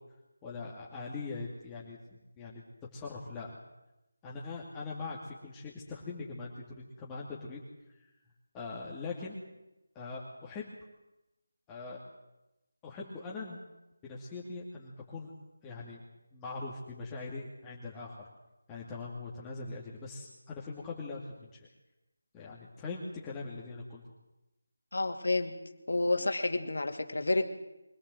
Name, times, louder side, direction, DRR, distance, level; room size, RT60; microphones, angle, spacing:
voice 1, 0.4-2.6 2.9-3.6 4.2-7.6 8.0-8.1 8.5-9.4 9.9-10.7 11.7-12.0 12.8-13.6 14.0-15.3 15.6-16.0 16.3-18.2 18.7-21.6 22.3-24.0, left 3 dB, 15° left, -4 dB, 2.5 m, -41 dB
voice 2, 24.9-25.5 25.9-27.4, left 2 dB, 70° left, 7 dB, 2.6 m, -29 dB
24.0 x 17.5 x 7.8 m, 0.97 s
figure-of-eight pair, 165°, 0 cm